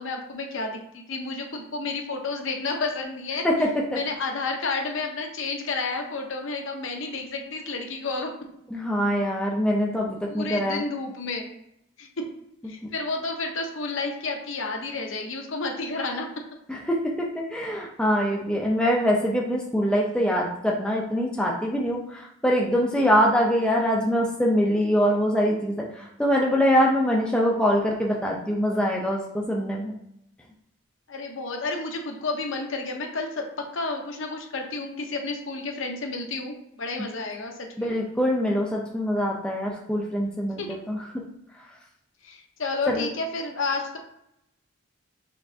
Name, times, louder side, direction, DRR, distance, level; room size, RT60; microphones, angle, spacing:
voice 1, 0.0-3.4 3.9-8.3 10.3-11.5 12.0-12.3 12.7-16.3 31.1-38.0 40.6-40.8 42.2-44.0, left 3 dB, 65° left, 3 dB, 0.7 m, -31 dB
voice 2, 8.7-10.8 16.7-25.8 26.2-29.9 37.8-40.6 40.9-41.0 42.9-43.1, equal, 5° left, -2 dB, 0.4 m, -23 dB
5.2 x 3.4 x 2.7 m, 0.79 s
head